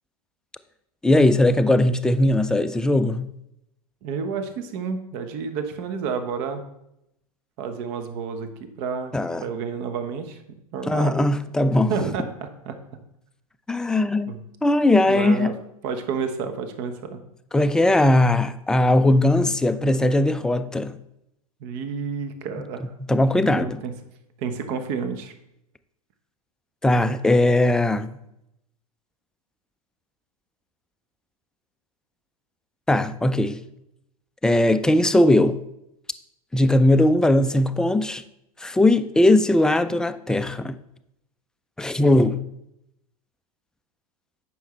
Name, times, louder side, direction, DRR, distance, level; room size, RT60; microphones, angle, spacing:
voice 1, 1.0-3.3 9.1-9.4 10.9-11.9 13.7-14.3 14.6-15.5 17.5-21.0 23.1-23.8 26.8-28.1 32.9-33.6 34.4-35.6 36.5-38.2 38.6-40.8 41.8-42.4, left 1 dB, 5° left, 0.3 m, -19 dB
voice 2, 4.0-6.6 7.6-9.1 9.4-10.4 10.7-11.1 11.9-12.8 14.3-14.4 15.1-15.5 15.8-17.2 21.6-22.8 23.4-23.9 24.4-25.3, right 6 dB, 45° right, 1.1 m, -30 dB
9.2 x 6.1 x 3.2 m
figure-of-eight pair, 95°, 19 cm